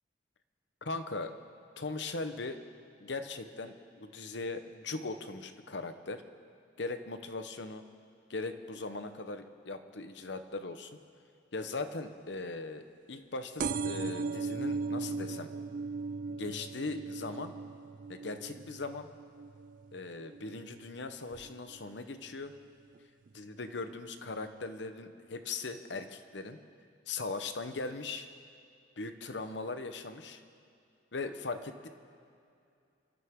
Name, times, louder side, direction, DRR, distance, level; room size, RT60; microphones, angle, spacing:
voice 1, 0.8-1.3 1.8-2.6 3.0-6.2 6.8-7.8 8.3-11.0 11.5-15.5 16.3-17.5 18.1-19.1 19.9-22.5 23.3-26.6 27.1-28.3 29.0-30.4 31.1-31.9, left 3 dB, 65° left, 9 dB, 0.9 m, -39 dB
sound 1, 13.6-20.8 21.3-21.8 22.6-22.7 23.0-23.1 23.3-23.4, right 4 dB, 45° right, 0.3 m, -38 dB
28.5 x 13.0 x 3.7 m, 2.4 s
head